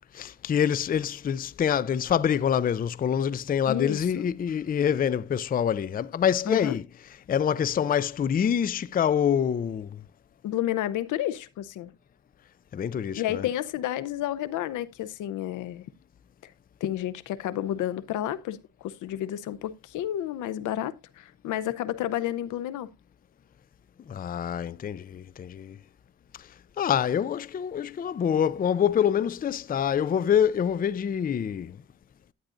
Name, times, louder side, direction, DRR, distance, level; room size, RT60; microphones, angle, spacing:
voice 1, 0.1-6.8 7.3-10.0 12.7-13.4 24.1-25.8 26.4-26.5 26.8-31.8, left 8 dB, 30° left, 0.4 m, -26 dB
voice 2, 3.7-4.2 6.5-6.8 10.4-11.9 13.2-15.8 16.4-16.5 16.8-22.9, left 12 dB, 80° left, 0.8 m, -31 dB
12.0 x 9.4 x 2.6 m
cardioid pair, 90°, 30 cm